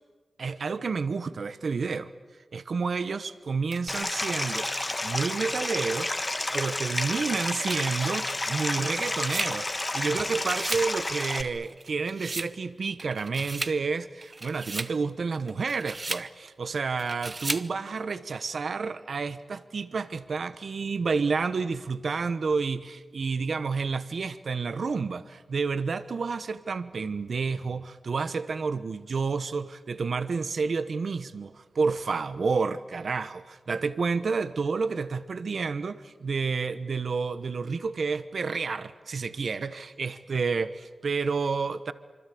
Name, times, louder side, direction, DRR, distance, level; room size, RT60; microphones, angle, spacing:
voice 1, 0.4-2.1 2.5-4.7 5.0-6.2 6.5-41.9, right 4 dB, 65° right, 1.0 m, -30 dB
sound 1, 3.7-5.2 5.8-5.9 7.1-10.1 10.4-10.9 11.2-12.5 13.0-13.8 14.2-14.9 15.5-16.3 17.0-17.7, right 3 dB, 35° right, 0.8 m, -37 dB
Stream, 3.9-11.4, left 2 dB, 25° left, 1.4 m, -30 dB
26.0 x 25.0 x 8.6 m
wide cardioid pair, 105°, 0 cm